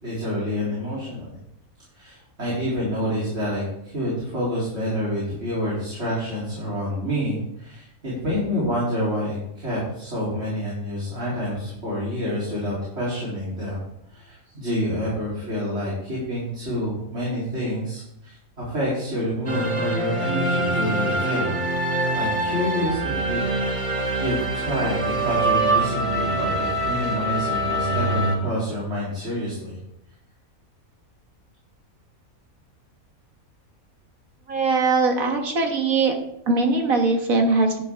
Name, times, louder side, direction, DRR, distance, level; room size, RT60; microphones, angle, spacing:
voice 1, 0.0-1.4 1.9-13.8 14.1-21.6 22.1-23.4 24.2-29.8, equal, 45° right, -7 dB, 3.7 m, -28 dB
sound 1, 19.5-28.4, right 2 dB, 25° right, 1.2 m, -24 dB
voice 2, 34.5-36.1 36.5-37.8, right 3 dB, 70° right, 3 dB, 1.9 m, -21 dB
10.5 x 10.0 x 3.6 m, 0.78 s
omnidirectional pair, 1.5 m